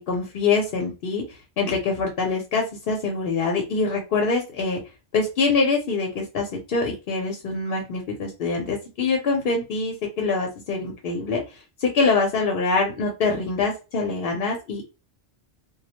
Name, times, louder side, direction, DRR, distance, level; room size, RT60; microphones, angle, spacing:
voice 1, 0.1-1.2 1.6-4.8 5.1-14.8, left 4 dB, 60° left, 1 dB, 0.7 m, -24 dB
2.2 x 2.0 x 2.8 m, 0.29 s
omnidirectional pair, 1.1 m